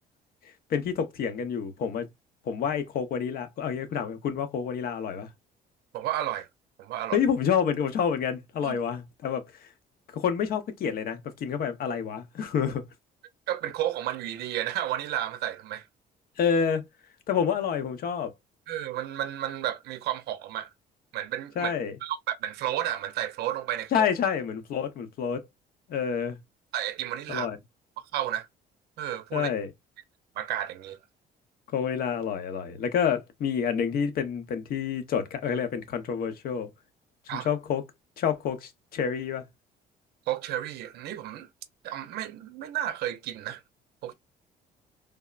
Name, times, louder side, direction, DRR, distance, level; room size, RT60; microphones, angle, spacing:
voice 1, 0.7-2.1 2.5-5.3 7.1-9.7 10.1-12.8 16.4-16.8 17.3-18.3 21.6-21.9 23.9-25.4 25.9-26.4 27.3-27.6 29.3-29.7 31.7-36.7 37.3-37.8 38.2-39.4, left 7 dB, 60° left, 0.8 m, -28 dB
voice 2, 5.9-6.5 6.8-7.2 8.6-8.8 13.5-15.9 18.7-20.7 21.1-21.7 22.0-24.1 26.7-27.5 28.1-28.5 29.0-29.5 30.4-31.0 37.3-37.5 40.3-41.5 41.8-43.6 44.0-44.1, right 11 dB, 75° right, 0.5 m, -32 dB
3.4 x 2.0 x 2.3 m
cardioid pair, 110°, 17 cm